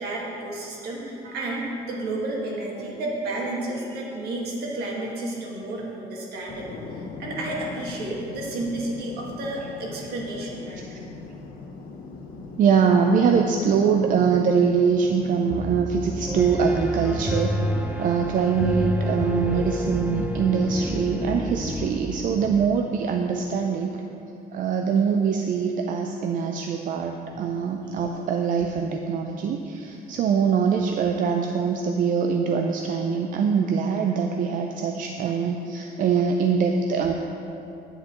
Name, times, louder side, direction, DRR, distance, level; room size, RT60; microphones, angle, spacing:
voice 1, 0.0-10.8, right 2 dB, 70° right, -3 dB, 1.7 m, -31 dB
sound 1, 6.5-21.5, left 3 dB, 60° left, 0.8 m, -39 dB
voice 2, 12.6-17.6 18.0-23.9 24.5-37.1, right 6 dB, 55° right, 3 dB, 0.4 m, -23 dB
Piano, 15.5-22.5, equal, 10° right, 0.7 m, -29 dB
9.0 x 7.6 x 3.0 m, 2.8 s
cardioid pair, 110°, 17 cm